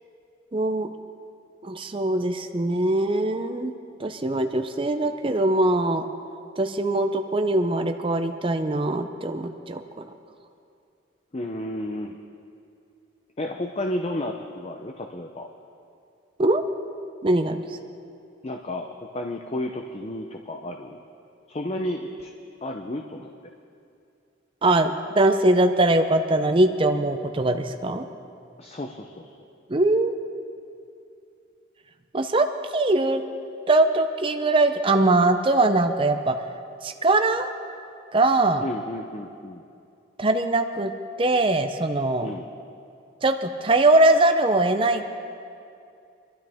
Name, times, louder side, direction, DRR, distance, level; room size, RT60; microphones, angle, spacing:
voice 1, 0.5-0.9 1.6-3.7 4.0-6.0 6.6-9.8 16.4-16.6 17.2-17.6 24.6-28.0 29.7-30.1 32.1-32.5 32.7-33.2 33.7-36.4 36.8-37.5 38.1-38.6 40.2-40.9 41.2-42.3 43.2-45.1, right 2 dB, 25° right, 6 dB, 0.5 m, -21 dB
voice 2, 11.3-12.2 13.4-15.5 18.4-21.0 21.5-22.3 22.6-23.3 28.6-29.3 38.6-39.6 42.2-42.5, left 1 dB, 35° left, 3 dB, 0.6 m, -32 dB
24.5 x 12.5 x 3.5 m, 2.5 s
head